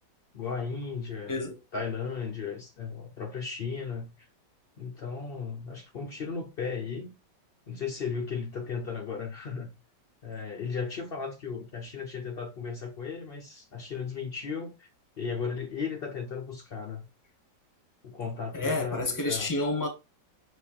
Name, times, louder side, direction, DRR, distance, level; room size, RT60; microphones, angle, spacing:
voice 1, 0.3-4.3 4.8-7.1 7.7-9.7 10.2-14.9 15.2-17.0 18.0-19.5, left 5 dB, 90° left, 0.5 m, -35 dB
voice 2, 18.5-19.9, left 2 dB, 15° left, 0.6 m, -29 dB
6.4 x 3.0 x 2.3 m
omnidirectional pair, 2.0 m